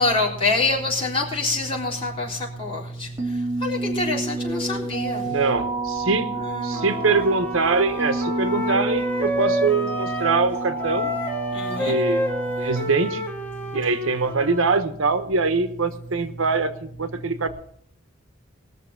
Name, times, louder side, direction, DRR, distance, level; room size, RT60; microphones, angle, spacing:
voice 1, 0.0-2.8 3.6-5.2 6.4-6.8 11.5-12.0, left 3 dB, 30° left, -4 dB, 3.8 m, -25 dB
sound 1, 3.2-12.8, right 3 dB, 15° right, 3.2 m, -29 dB
voice 2, 5.2-6.3 6.6-11.1 11.7-12.3 12.6-13.2 13.7-16.7 17.0-17.5, right 4 dB, 80° right, 10 dB, 1.0 m, -23 dB
Wind instrument woodwind instrument, 6.7-10.5 10.8-14.8, left 1 dB, 10° left, 1.8 m, -29 dB
20.0 x 6.7 x 5.7 m, 0.63 s
head